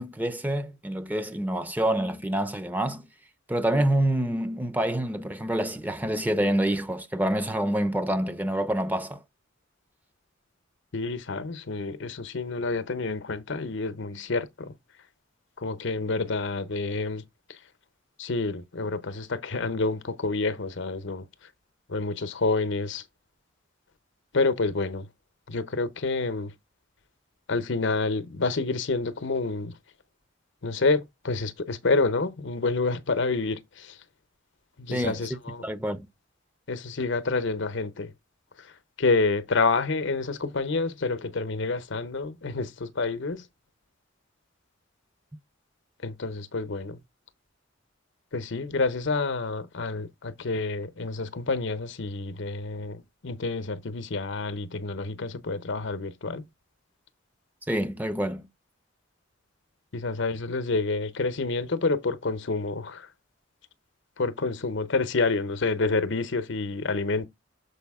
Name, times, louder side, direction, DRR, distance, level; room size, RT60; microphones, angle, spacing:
voice 1, 0.0-3.1 3.5-9.2 34.9-35.3 35.6-36.1 57.7-58.5, right 1 dB, 10° right, 0.7 m, -27 dB
voice 2, 10.9-14.7 15.6-17.2 18.2-21.2 21.9-23.0 24.3-25.1 25.5-26.5 27.5-29.8 30.6-34.0 34.8-35.6 36.7-38.1 39.0-43.4 46.0-47.0 48.3-56.4 59.9-63.1 64.2-67.3, left 3 dB, 65° left, 0.8 m, -28 dB
6.9 x 4.9 x 3.6 m
head